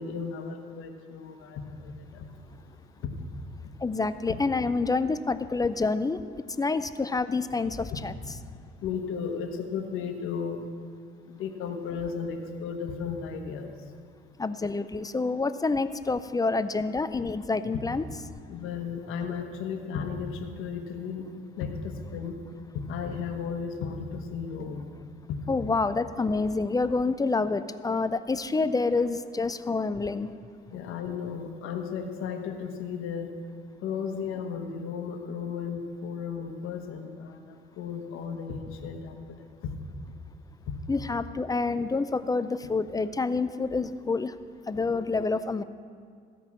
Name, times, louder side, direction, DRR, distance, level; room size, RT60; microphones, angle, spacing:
voice 1, 0.0-2.2 3.0-3.1 8.8-10.6 11.3-13.7 17.7-17.8 18.5-21.3 21.6-22.3 22.7-24.8 25.3-25.8 30.7-33.3 33.8-39.4 39.6-39.7 40.7-40.8, left 6 dB, 75° left, 5 dB, 1.2 m, -34 dB
voice 2, 3.8-6.2 6.6-8.1 14.4-18.1 25.5-30.3 40.9-44.3 44.7-45.6, left 3 dB, 15° left, 13 dB, 0.4 m, -27 dB
15.5 x 5.4 x 7.2 m, 2.1 s
cardioid pair, 90°, 21 cm